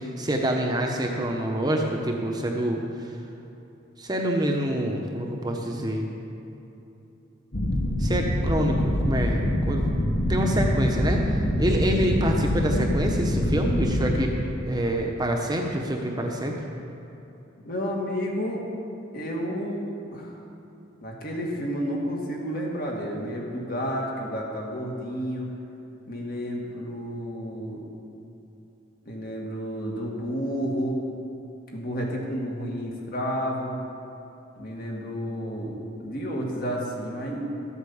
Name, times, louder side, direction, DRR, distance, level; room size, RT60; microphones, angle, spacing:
voice 1, 0.0-2.8 4.0-6.1 8.0-9.9 10.3-11.2 11.6-14.3 14.7-16.6, right 1 dB, 20° right, 1 dB, 1.0 m, -26 dB
sound 1, 7.5-14.2, left 1 dB, 65° left, 1.6 m, -25 dB
voice 2, 17.6-18.6 19.1-20.4 21.0-25.5 26.1-27.8 29.1-31.0 31.7-33.8 34.6-37.5, equal, 50° left, -1 dB, 2.2 m, -31 dB
13.0 x 8.2 x 7.2 m, 2.9 s
head